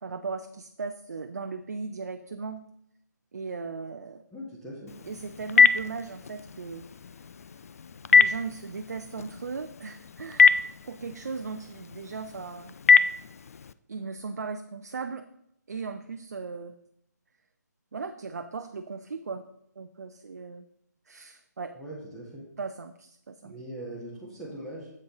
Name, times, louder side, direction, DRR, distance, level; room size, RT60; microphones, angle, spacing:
voice 1, 0.0-2.7 3.3-4.2 5.0-6.9 8.1-12.7 13.9-15.3 15.7-16.8 17.9-19.5 19.8-20.6 21.1-21.8 22.6-23.5, right 4 dB, 60° right, 7 dB, 0.6 m, -37 dB
voice 2, 4.3-4.9 21.7-22.4 23.4-24.9, right 1 dB, 5° left, -7 dB, 1.6 m, -40 dB
Telephone, 4.9-13.7, left 5 dB, 55° left, 0.4 m, -25 dB
8.4 x 7.6 x 3.9 m, 0.74 s
figure-of-eight pair, 145°, 10 cm